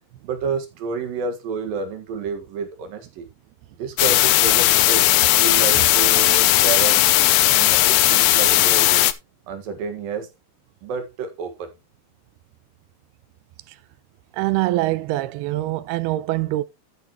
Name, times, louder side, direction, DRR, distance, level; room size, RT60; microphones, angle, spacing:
voice 1, 0.2-3.3 3.8-5.1 5.4-7.1 7.5-9.1 9.5-10.3 10.8-11.7, right 5 dB, 70° right, 3.3 m, -29 dB
sound 1, 4.0-9.1, left 16 dB, 80° left, 2.2 m, -16 dB
voice 2, 14.3-16.6, right 17 dB, 90° right, 2.7 m, -23 dB
13.0 x 8.1 x 3.0 m
omnidirectional pair, 4.4 m